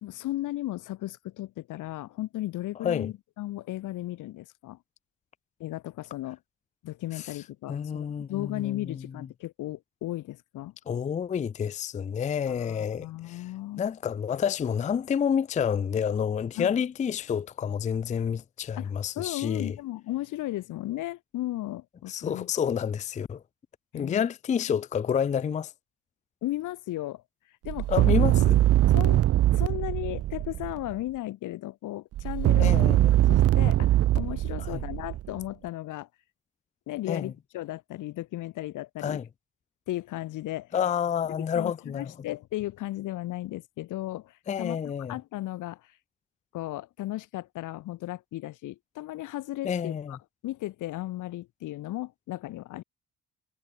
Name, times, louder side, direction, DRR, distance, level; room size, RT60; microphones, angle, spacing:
voice 1, 0.0-4.8 5.6-6.4 6.8-10.7 12.5-13.8 16.6-16.7 18.8-22.5 23.9-24.3 24.7-24.8 26.4-27.2 27.6-27.9 28.9-29.2 29.5-33.0 33.3-36.1 36.9-39.2 39.9-40.7 41.5-44.8 45.1-45.8 46.5-50.2 50.4-52.8, left 16 dB, 85° left, 1.7 m, -35 dB
voice 2, 7.7-9.0 10.9-13.5 13.8-19.8 22.1-23.4 23.9-25.7 27.9-28.6 32.6-33.1 34.6-34.8 37.1-37.3 39.0-39.3 40.7-42.1 44.5-45.2 49.6-50.2, left 7 dB, 25° left, 0.4 m, -29 dB
sound 1, 27.7-30.9 32.2-35.4, right 14 dB, 50° right, 0.4 m, -22 dB
cardioid pair, 90°, 30 cm